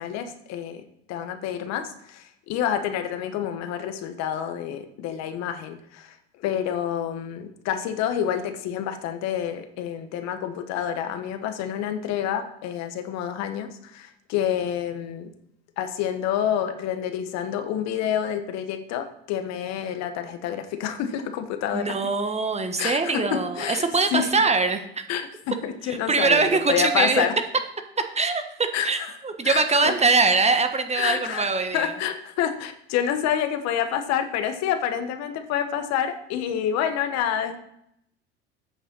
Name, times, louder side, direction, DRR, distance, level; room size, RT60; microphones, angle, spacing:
voice 1, 0.0-15.3 15.8-22.0 22.8-23.8 24.1-24.3 25.1-27.3 28.7-28.9 29.4-29.9 30.9-37.6, left 9 dB, 60° left, 8 dB, 1.3 m, -28 dB
voice 2, 21.7-25.0 25.8-27.3 28.0-31.9, right 4 dB, 20° right, 7 dB, 1.3 m, -23 dB
8.7 x 6.8 x 5.5 m, 0.76 s
hypercardioid pair, 70°, 31 cm